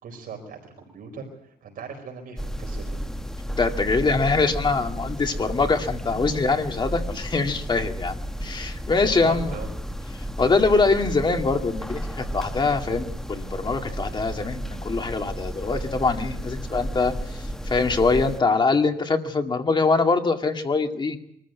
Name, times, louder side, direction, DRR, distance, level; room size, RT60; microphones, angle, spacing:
voice 1, 0.0-3.0 6.1-6.2 9.0-9.7 12.5-12.6, right 5 dB, 60° right, 1 dB, 4.8 m, -39 dB
sound 1, 2.4-18.4, equal, 5° left, 1.0 m, -33 dB
voice 2, 3.6-9.5 10.4-21.2, left 4 dB, 30° left, 4 dB, 2.2 m, -23 dB
24.0 x 14.5 x 9.4 m, 0.77 s
cardioid pair, 135°, 16 cm